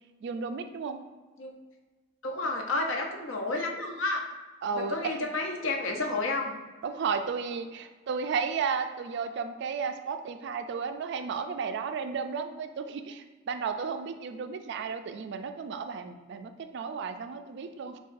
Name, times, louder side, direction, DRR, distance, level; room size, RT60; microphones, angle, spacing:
voice 1, 0.2-1.0 4.6-5.3 6.8-18.0, right 5 dB, 60° right, 7 dB, 0.3 m, -33 dB
voice 2, 2.2-4.3 4.7-6.5, left 2 dB, 75° left, 2 dB, 0.6 m, -31 dB
6.6 x 2.3 x 2.5 m, 1.3 s
head